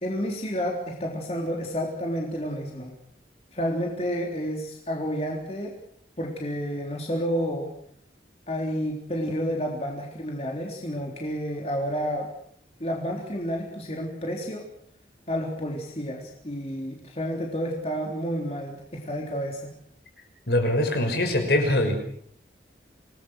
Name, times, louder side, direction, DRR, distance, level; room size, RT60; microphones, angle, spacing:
voice 1, 0.0-2.9 3.5-5.7 6.2-7.7 8.5-12.3 12.8-14.6 15.3-19.7, equal, 35° left, 0 dB, 3.6 m, -30 dB
voice 2, 20.5-22.0, left 1 dB, 70° left, 4 dB, 6.2 m, -23 dB
27.0 x 19.5 x 6.5 m, 0.64 s
head